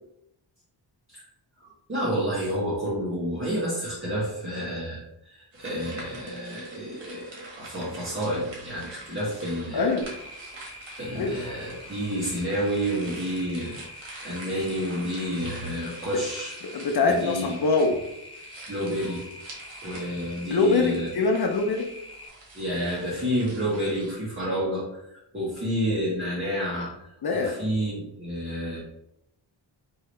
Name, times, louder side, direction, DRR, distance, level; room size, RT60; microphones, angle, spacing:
voice 1, 1.6-7.3 7.6-10.0 10.6-10.7 11.0-13.7 14.2-16.6 17.0-17.5 18.7-19.3 19.8-21.1 22.5-28.8, equal, 30° right, -8 dB, 1.4 m, -29 dB
sound 1, 5.5-24.1, right 2 dB, 80° right, 1.4 m, -46 dB
voice 2, 9.7-10.1 11.2-11.4 16.7-18.0 20.5-21.9 27.2-27.6, left 3 dB, 55° left, 3 dB, 0.6 m, -23 dB
sound 2, 10.0-22.3, left 2 dB, 10° left, 0.5 m, -45 dB
4.6 x 2.9 x 3.2 m, 0.80 s
wide cardioid pair, 100°, 45 cm